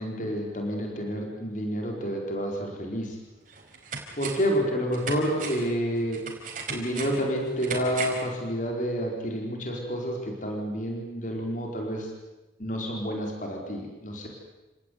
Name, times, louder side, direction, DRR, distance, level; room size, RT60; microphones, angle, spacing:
voice 1, 0.0-3.2 4.2-6.2 6.7-12.1 12.6-14.3, equal, 40° left, 1 dB, 4.7 m, -29 dB
sound 1, 2.9-3.0 3.5-4.6 4.9-8.3 8.6-8.7, right 5 dB, 45° right, 5.0 m, -37 dB
29.0 x 18.5 x 9.5 m, 1.1 s
head